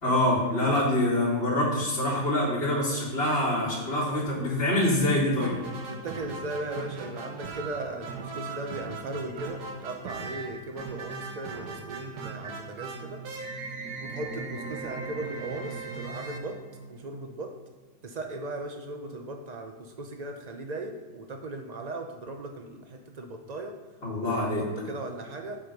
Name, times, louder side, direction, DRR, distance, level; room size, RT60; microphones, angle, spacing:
voice 1, 0.0-5.5 24.0-24.6, left 1 dB, 35° left, -10 dB, 2.7 m, -25 dB
sound 1, 5.4-17.2, right 4 dB, 65° right, 1.6 m, -39 dB
voice 2, 5.9-13.2 14.0-16.6 16.9-17.6 18.0-23.7 24.2-25.6, right 2 dB, 85° right, 4 dB, 0.3 m, -37 dB
7.5 x 7.2 x 5.3 m, 1.4 s
omnidirectional pair, 1.9 m